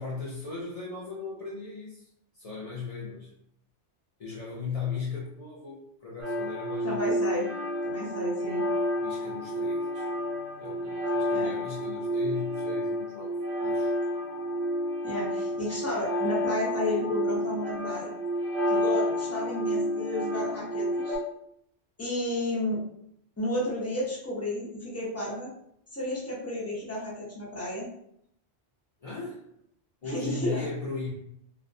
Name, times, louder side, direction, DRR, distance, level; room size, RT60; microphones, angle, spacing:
voice 1, 0.0-2.1 2.3-3.3 4.2-7.0 8.7-10.2 10.6-13.9 29.0-29.4 30.0-31.1, left 4 dB, 55° left, -6 dB, 0.4 m, -37 dB
sound 1, 6.2-21.2, equal, 60° right, 1.0 m, -30 dB
voice 2, 6.8-7.5 7.8-8.6 11.3-11.5 15.0-18.1 18.7-21.2 22.0-22.8 23.4-25.5 25.9-27.9 30.0-30.7, left 1 dB, 15° left, -6 dB, 0.6 m, -32 dB
2.4 x 2.1 x 2.5 m, 0.72 s
omnidirectional pair, 1.2 m